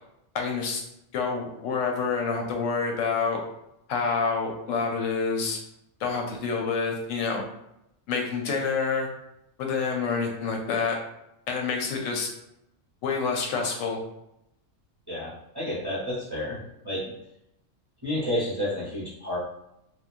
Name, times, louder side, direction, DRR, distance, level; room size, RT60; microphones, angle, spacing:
voice 1, 0.3-0.8 1.1-3.4 3.9-5.6 6.0-7.4 8.1-9.1 9.6-11.0 11.5-12.3 13.0-14.0, left 5 dB, 90° left, 2 dB, 1.0 m, -27 dB
voice 2, 15.1-16.6 16.8-17.0 18.0-19.4, left 1 dB, 25° right, -8 dB, 0.7 m, -30 dB
3.0 x 2.2 x 2.4 m, 0.83 s
omnidirectional pair, 1.3 m